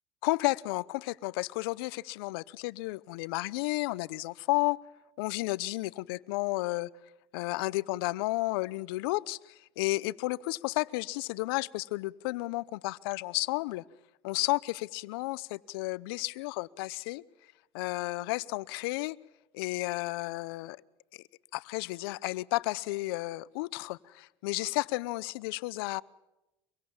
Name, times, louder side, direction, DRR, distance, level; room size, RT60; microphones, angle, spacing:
voice 1, 0.2-4.8 5.2-6.9 7.3-13.8 14.2-17.2 17.7-19.2 19.5-20.8 21.5-26.0, left 21 dB, 75° left, 20 dB, 0.8 m, -32 dB
24.5 x 23.0 x 7.3 m, 0.94 s
hypercardioid pair, 80°, 12 cm